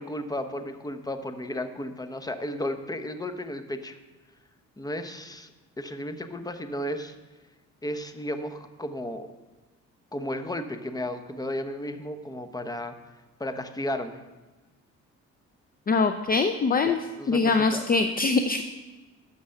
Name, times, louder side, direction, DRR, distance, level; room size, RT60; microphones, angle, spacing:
voice 1, 0.0-4.0 4.8-5.5 5.8-7.1 7.8-9.3 10.1-14.2 16.8-17.8, left 1 dB, 10° left, 8 dB, 0.9 m, -34 dB
voice 2, 15.9-17.0 17.3-18.6, left 4 dB, 30° left, 8 dB, 0.6 m, -23 dB
11.5 x 6.9 x 5.8 m, 1.2 s
cardioid pair, 90°, 30 cm